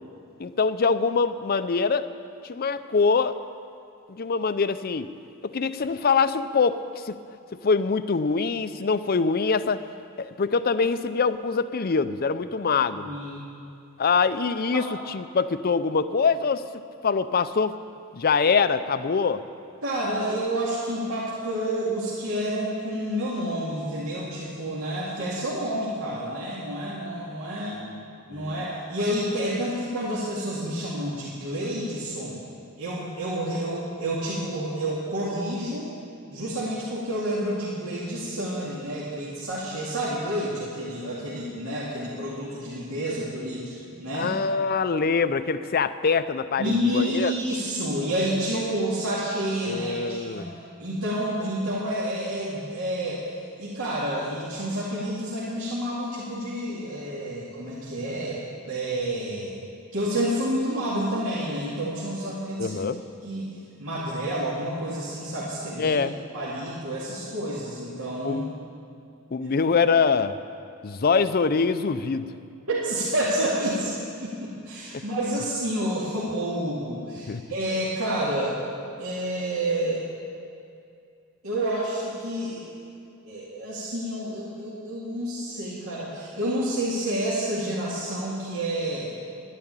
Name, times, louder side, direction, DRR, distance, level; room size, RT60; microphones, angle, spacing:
voice 1, 0.4-2.0 2.4-3.4 4.1-5.1 5.5-7.1 7.6-9.8 10.2-13.1 14.0-16.6 17.0-17.8 18.1-19.4 27.7-28.0 28.3-28.6 44.1-47.3 49.7-50.5 62.6-63.0 65.8-66.2 68.2-68.5 69.3-70.4 70.8-72.3 74.9-75.0 77.3-77.4, left 5 dB, 45° left, 13 dB, 0.5 m, -24 dB
voice 2, 12.9-13.4 14.7-14.8 19.8-27.8 28.3-32.4 32.8-35.9 36.3-44.3 46.6-50.5 50.8-53.3 53.6-59.5 59.9-62.8 63.2-63.5 63.8-66.0 66.3-68.4 72.7-73.9 74.2-78.6 79.0-80.0 81.4-82.7 83.2-89.1, right 1 dB, 70° right, -7 dB, 2.3 m, -29 dB
11.5 x 10.5 x 8.9 m, 2.5 s
head